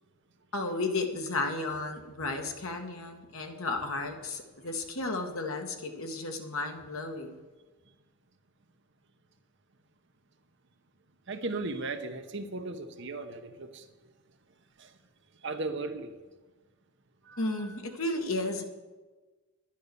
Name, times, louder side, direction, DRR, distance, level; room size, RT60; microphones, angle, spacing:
voice 1, 0.5-7.4 17.4-18.6, left 2 dB, 70° left, 4 dB, 1.7 m, -33 dB
voice 2, 11.3-14.1 14.8-15.0 15.4-16.1 17.2-17.8, right 3 dB, 55° right, 7 dB, 1.0 m, -37 dB
10.5 x 10.5 x 6.9 m, 1.2 s
head